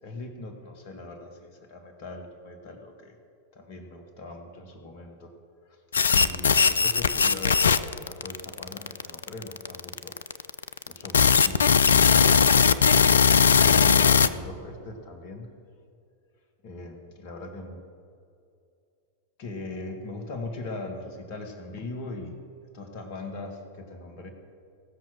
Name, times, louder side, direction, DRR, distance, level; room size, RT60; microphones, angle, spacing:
voice 1, 0.0-3.2 3.5-5.3 5.7-5.8 6.1-10.2 10.9-11.7 13.6-15.5 16.6-17.8 19.4-22.4 22.7-24.3, left 2 dB, 45° left, 4 dB, 1.7 m, -40 dB
sound 1, 5.9-14.3, left 6 dB, 70° left, 0.4 m, -19 dB
16.5 x 6.0 x 6.3 m, 2.5 s
figure-of-eight pair, 90°, 0 cm